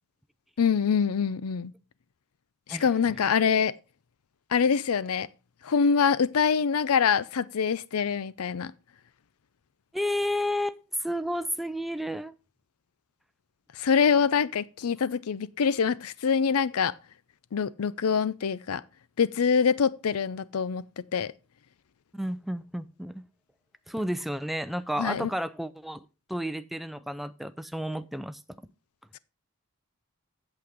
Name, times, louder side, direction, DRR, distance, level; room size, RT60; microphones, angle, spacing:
voice 1, 0.6-1.7 2.7-3.7 4.5-5.3 5.6-8.7 13.8-16.9 17.5-18.8 19.2-20.8 21.1-21.3 25.0-25.3, left 6 dB, 80° left, 0.5 m, -25 dB
voice 2, 9.9-12.3 22.1-23.2 23.9-26.0 26.3-28.4, equal, ahead, 0.4 m, -31 dB
8.5 x 7.8 x 5.0 m
head